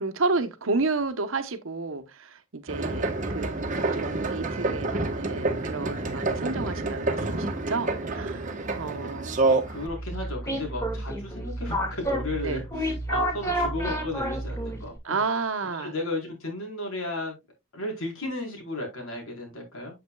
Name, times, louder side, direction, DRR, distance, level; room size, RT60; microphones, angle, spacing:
voice 1, 0.0-3.5 3.9-8.5 8.8-9.4 12.4-12.6 15.0-15.9, right 3 dB, 70° right, 1.0 m, -31 dB
sound 1, 2.7-9.9, right 2 dB, 35° right, 1.2 m, -28 dB
voice 2, 9.3-15.2 15.7-17.4 17.7-20.0, left 2 dB, 80° left, 4.2 m, -34 dB
sound 2, 9.9-15.0, right 1 dB, 15° left, 2.1 m, -30 dB
8.3 x 7.8 x 2.3 m
head